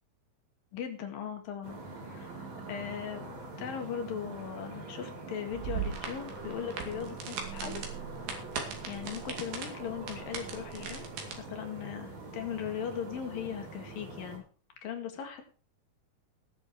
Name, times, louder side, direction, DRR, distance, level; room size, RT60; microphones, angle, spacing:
voice 1, 0.7-1.8 2.0-2.4 2.7-7.8 8.9-11.1 11.4-14.4 14.8-15.4, left 8 dB, 75° left, 5 dB, 3.7 m, -38 dB
sound 1, 1.6-14.4, right 2 dB, 50° right, 4.9 m, -44 dB
sound 2, 5.5-11.3, right 7 dB, 85° right, 4.2 m, -39 dB
18.5 x 7.2 x 4.7 m, 0.39 s
omnidirectional pair, 4.1 m